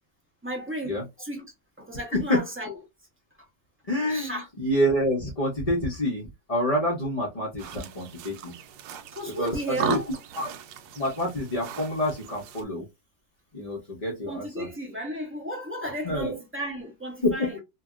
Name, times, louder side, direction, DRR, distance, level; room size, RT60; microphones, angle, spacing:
voice 1, 0.4-1.4 1.8-2.8 4.1-4.5 9.1-10.1 14.2-17.6, equal, 20° right, 0.3 m, -34 dB
voice 2, 2.1-2.4 3.9-8.5 9.4-9.5 9.8-10.0 10.3-10.5 11.0-12.8 13.5-14.7 16.0-16.3 17.2-17.6, equal, 35° left, 0.6 m, -27 dB
sound 1, 7.6-12.6, right 8 dB, 80° right, 1.2 m, -37 dB
2.9 x 2.7 x 2.4 m
omnidirectional pair, 2.0 m